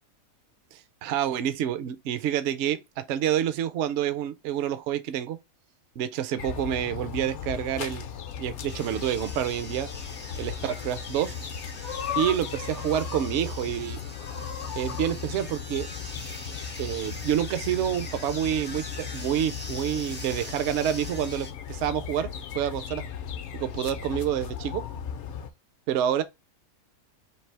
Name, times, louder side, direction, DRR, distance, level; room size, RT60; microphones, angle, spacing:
voice 1, 0.7-5.4 6.0-8.1 8.4-9.9 10.4-11.3 12.1-14.0 14.8-15.9 16.8-22.3 22.5-23.0 23.5-24.8 25.9-26.2, right 10 dB, 65° right, 0.7 m, -28 dB
sound 1, 6.4-25.5, left 7 dB, 65° left, 0.8 m, -36 dB
sound 2, 8.7-21.5, left 1 dB, 15° left, 0.4 m, -43 dB
3.3 x 2.7 x 4.3 m
omnidirectional pair, 1.5 m